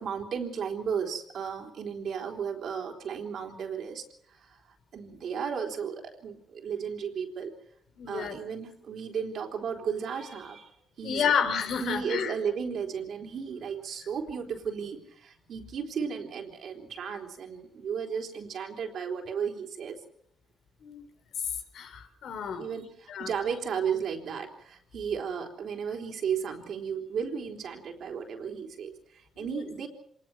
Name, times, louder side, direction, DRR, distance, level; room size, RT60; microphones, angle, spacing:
voice 1, 0.0-4.6 4.9-7.5 8.1-10.7 11.0-11.3 11.8-20.0 22.6-29.9, right 7 dB, 65° right, 2 dB, 3.8 m, -34 dB
voice 2, 8.0-8.4 11.0-12.3 20.8-21.0 21.7-22.7 23.1-23.3 29.4-29.5, left 7 dB, 70° left, 8 dB, 3.5 m, -30 dB
26.0 x 20.0 x 6.2 m, 0.66 s
cardioid pair, 90°, 0 cm